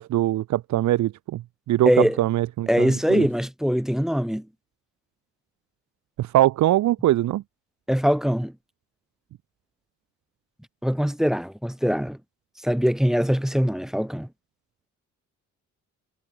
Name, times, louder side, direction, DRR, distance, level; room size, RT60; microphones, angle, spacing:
voice 1, 0.0-1.4 1.7-3.3 6.2-7.4, right 14 dB, 70° right, 0.8 m, -22 dB
voice 2, 1.9-2.2 2.7-4.5 7.9-8.5 10.8-12.2 12.6-14.3, equal, ahead, 0.4 m, -22 dB
cardioid pair, 90°, 30 cm